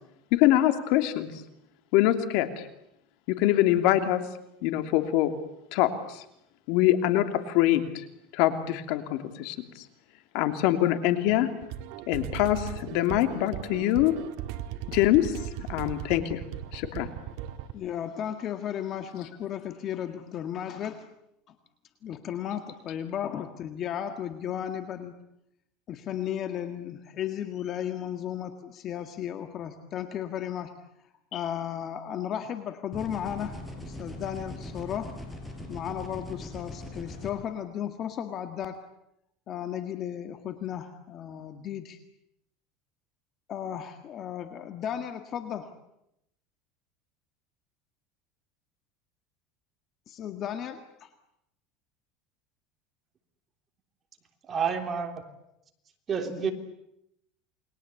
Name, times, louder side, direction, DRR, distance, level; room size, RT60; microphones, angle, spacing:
voice 1, 0.3-1.3 1.9-2.5 3.3-4.2 4.6-5.3 5.7-6.2 6.7-8.0 8.3-9.5 10.3-11.5 12.1-14.1 14.9-15.3 15.7-16.4 16.7-17.1, left 14 dB, 65° left, 2.9 m, -24 dB
sound 1, 11.6-17.7, right 11 dB, 70° right, 1.8 m, -37 dB
voice 2, 17.7-21.1 21.5-21.6 22.0-25.1 25.9-30.7 31.3-35.1 35.7-38.8 39.5-42.0 43.5-45.7 50.1-51.1 56.4-56.5, left 9 dB, 40° left, 1.8 m, -34 dB
sound 2, 32.9-37.3, left 1 dB, 10° left, 6.1 m, -40 dB
voice 3, 54.5-55.1 56.1-56.5, right 6 dB, 25° right, 3.4 m, -29 dB
29.0 x 21.5 x 8.4 m
supercardioid pair, 140°, 0 cm